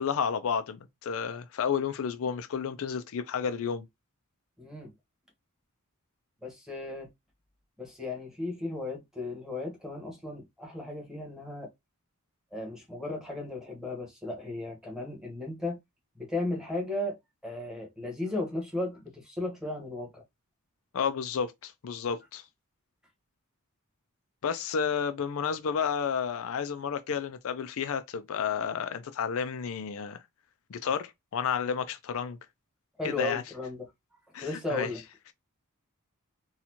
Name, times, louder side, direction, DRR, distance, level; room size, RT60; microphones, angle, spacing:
voice 1, 0.0-3.8 20.9-22.5 24.4-30.2 30.7-32.4 33.0-33.4 34.3-34.9, left 7 dB, 65° left, 0.4 m, -31 dB
voice 2, 4.6-4.9 6.4-7.1 7.8-11.7 12.5-15.8 16.1-17.2 17.4-20.2 33.0-33.9 34.4-35.0, left 2 dB, 5° right, 1.3 m, -35 dB
4.2 x 2.3 x 2.8 m
head